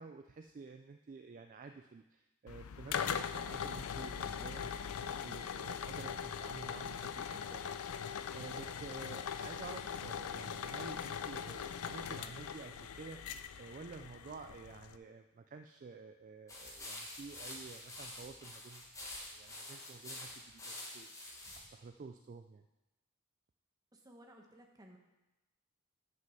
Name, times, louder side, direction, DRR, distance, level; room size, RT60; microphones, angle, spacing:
voice 1, 0.0-8.0 8.3-21.1 21.6-22.6, right 4 dB, 35° right, 7 dB, 0.3 m, -51 dB
sound 1, 2.5-15.0, left 7 dB, 85° left, 0.4 m, -41 dB
sound 2, 16.5-21.6, left 1 dB, 15° left, 1.5 m, -47 dB
voice 2, 23.9-25.0, equal, 15° right, 1 dB, 1.0 m, -57 dB
7.4 x 6.3 x 5.7 m, 1.0 s
head